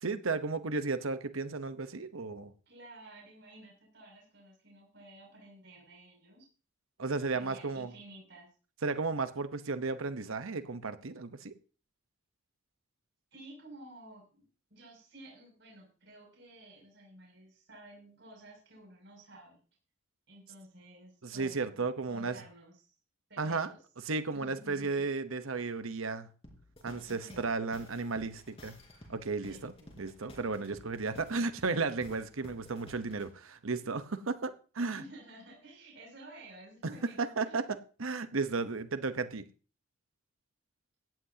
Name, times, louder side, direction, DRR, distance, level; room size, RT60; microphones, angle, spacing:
voice 1, 0.0-2.5 7.0-7.9 8.8-11.5 21.2-22.4 23.4-23.7 24.0-26.3 26.8-28.8 29.1-35.0 37.2-39.4, right 4 dB, 85° right, 1.0 m, -34 dB
voice 2, 2.7-6.5 7.3-8.5 13.3-19.6 20.3-22.9 23.3-23.8 24.3-25.1 27.1-27.6 29.5-29.9 34.9-37.7, right 1 dB, 55° right, 6.7 m, -53 dB
sound 1, 26.4-33.3, left 1 dB, 30° left, 4.3 m, -54 dB
17.0 x 13.5 x 2.8 m
head